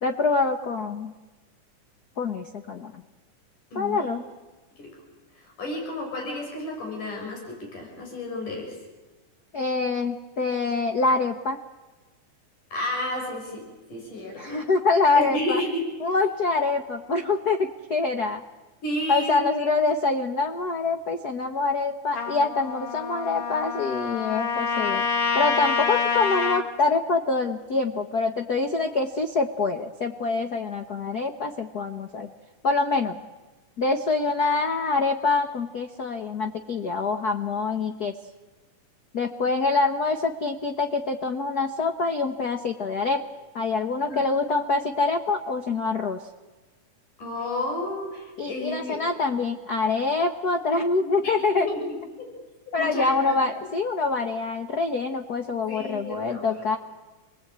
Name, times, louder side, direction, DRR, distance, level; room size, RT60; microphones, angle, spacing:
voice 1, 0.0-1.1 2.2-3.0 3.7-4.2 9.5-11.6 14.4-15.6 16.0-18.4 19.1-25.0 25.3-32.3 32.6-33.2 33.8-38.2 39.1-43.2 43.5-46.2 48.4-51.7 52.7-56.8, left 3 dB, 65° left, 6 dB, 0.9 m, -25 dB
voice 2, 3.7-4.1 4.8-4.9 5.4-8.8 12.7-13.6 13.9-14.6 15.2-15.8 18.8-19.7 44.1-44.2 47.2-49.0 51.2-51.9 52.8-53.4 55.7-56.6, left 1 dB, 90° left, 0 dB, 7.5 m, -31 dB
Trumpet, 22.1-26.7, left 5 dB, 45° left, 2.8 m, -27 dB
29.0 x 20.0 x 8.8 m, 1.2 s
omnidirectional pair, 3.5 m